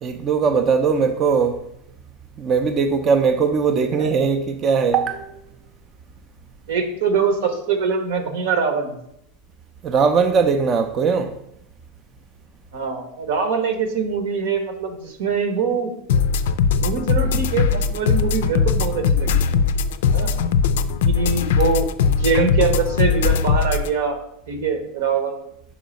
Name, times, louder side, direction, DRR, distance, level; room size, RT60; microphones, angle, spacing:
voice 1, 0.0-1.6 2.4-5.3 9.8-11.3, right 5 dB, 25° right, 0.4 m, -19 dB
voice 2, 3.9-4.2 6.7-9.0 12.7-15.9 16.8-19.4 20.1-20.3 21.0-24.2 24.5-25.4, right 5 dB, 80° right, 1.2 m, -23 dB
sound 1, 16.1-23.9, left 6 dB, 85° left, 0.4 m, -20 dB
5.1 x 4.7 x 5.1 m
supercardioid pair, 155°, 0 cm